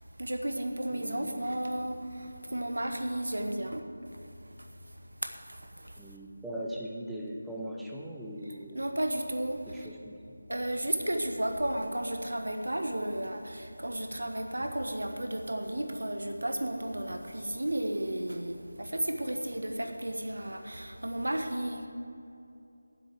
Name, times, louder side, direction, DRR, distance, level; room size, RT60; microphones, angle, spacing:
voice 1, 0.2-4.7 5.2-6.0 8.5-9.9 10.5-21.9, right 1 dB, 65° right, 5 dB, 1.2 m, -33 dB
voice 2, 0.9-1.5 6.0-8.8 9.7-10.4, equal, ahead, -4 dB, 0.7 m, -40 dB
9.9 x 7.6 x 7.4 m, 2.7 s
figure-of-eight pair, 165°, 0 cm